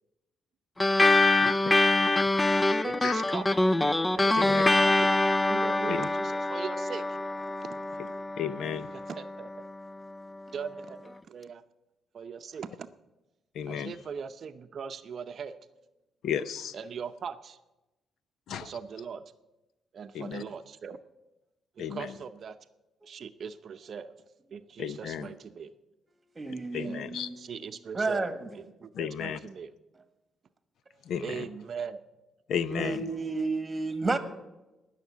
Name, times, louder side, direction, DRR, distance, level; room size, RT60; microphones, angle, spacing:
sound 1, 0.8-9.6, left 2 dB, 15° left, 0.4 m, -25 dB
voice 1, 1.1-1.8 3.0-3.2 4.4-4.6 5.9-6.1 8.4-8.9 13.5-13.9 16.2-16.7 18.5-18.7 20.1-20.4 21.8-22.1 24.8-25.3 26.4-27.3 28.9-29.4 31.0-31.5 32.5-33.1, left 8 dB, 75° left, 0.7 m, -34 dB
voice 2, 2.8-3.5 4.2-5.2 5.5-7.2 7.6-7.7 8.9-9.5 10.5-11.6 12.1-12.9 13.7-15.6 16.7-17.6 18.6-19.2 19.9-21.0 21.8-22.6 23.0-24.1 24.5-25.7 26.8-27.1 27.4-28.3 28.5-29.7 31.2-32.0, right 6 dB, 50° right, 0.6 m, -40 dB
voice 3, 26.3-27.4 27.9-28.4 32.7-34.2, right 3 dB, 20° right, 1.5 m, -31 dB
18.5 x 6.6 x 8.4 m
cardioid pair, 130°, 0 cm